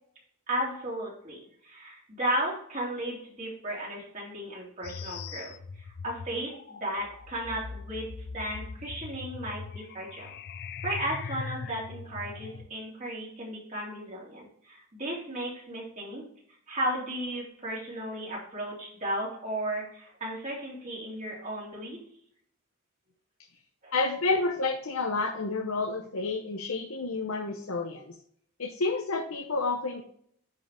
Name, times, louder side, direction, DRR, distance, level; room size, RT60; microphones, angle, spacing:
voice 1, 0.5-10.3 10.8-16.2 16.7-22.0 23.8-23.9, right 1 dB, 35° right, -4 dB, 3.3 m, -35 dB
sound 1, 4.8-12.7, left 5 dB, 45° left, 0.4 m, -41 dB
voice 2, 23.9-28.1 28.6-30.0, left 3 dB, 70° left, 3 dB, 0.9 m, -30 dB
10.5 x 5.0 x 3.4 m, 0.65 s
head